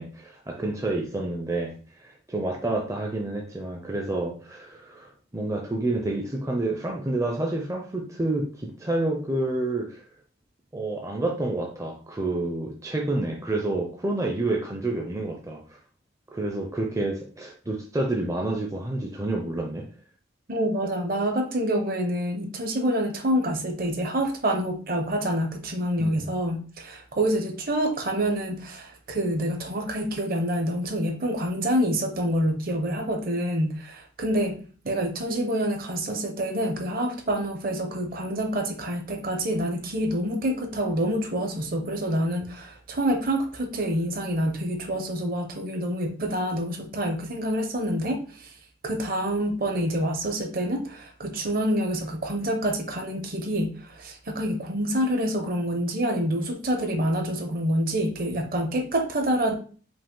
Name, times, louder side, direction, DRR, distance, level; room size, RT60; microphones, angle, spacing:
voice 1, 0.0-10.0 10.7-15.8 16.3-19.8 26.0-26.3, right 2 dB, 15° right, 1 dB, 0.5 m, -29 dB
voice 2, 20.5-34.6 34.8-48.5 48.8-59.5, equal, 45° right, 4 dB, 0.8 m, -27 dB
5.1 x 2.5 x 3.7 m, 0.40 s
head